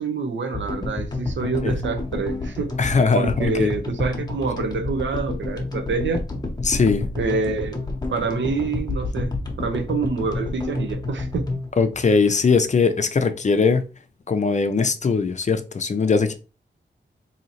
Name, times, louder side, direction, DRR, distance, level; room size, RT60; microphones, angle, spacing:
voice 1, 0.0-2.7 3.1-6.2 7.1-9.3 9.6-11.6, right 4 dB, 80° right, 0.7 m, -26 dB
sound 1, 0.5-12.9, left 2 dB, 20° left, 0.8 m, -30 dB
voice 2, 2.8-3.7 6.6-7.1 11.8-13.8 14.3-16.3, left 4 dB, 40° left, 0.5 m, -20 dB
3.9 x 2.8 x 2.8 m
wide cardioid pair, 135°, 19 cm